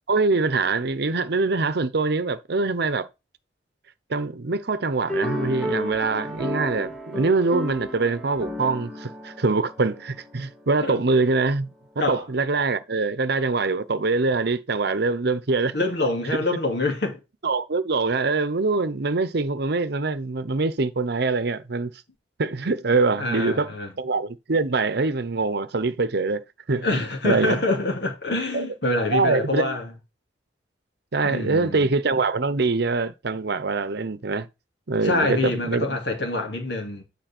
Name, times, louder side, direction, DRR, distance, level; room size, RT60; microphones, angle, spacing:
voice 1, 0.1-3.1 4.1-11.7 12.1-15.7 17.4-21.9 22.4-26.9 27.2-27.6 28.5-28.7 29.1-29.8 31.1-34.5 34.9-36.0, right 3 dB, 65° right, 0.8 m, -24 dB
sound 1, 5.1-10.6, left 1 dB, 5° left, 1.9 m, -32 dB
voice 2, 15.7-17.2 23.2-23.9 26.8-29.9 31.2-31.9 35.0-37.0, left 2 dB, 65° left, 2.6 m, -26 dB
9.3 x 4.8 x 4.4 m
head